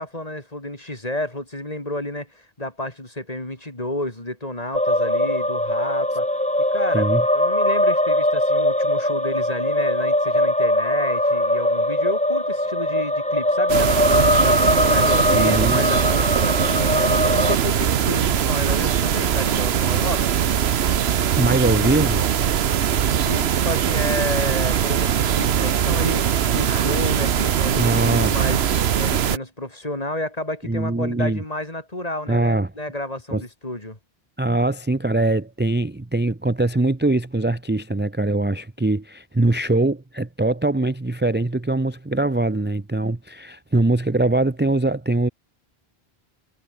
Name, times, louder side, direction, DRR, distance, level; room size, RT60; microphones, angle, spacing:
voice 1, 0.0-6.3 6.7-20.4 23.2-28.6 29.0-34.0, left 1 dB, 35° left, 4.7 m, -31 dB
sound 1, 4.7-17.6, left 1 dB, 5° left, 1.1 m, -21 dB
sound 2, 13.7-29.4, right 9 dB, 75° right, 1.1 m, -21 dB
voice 2, 15.3-15.8 21.4-22.3 27.7-28.3 30.6-31.4 32.3-32.7 33.3-33.4 34.4-45.3, right 2 dB, 10° right, 0.6 m, -22 dB
omnidirectional pair, 1.1 m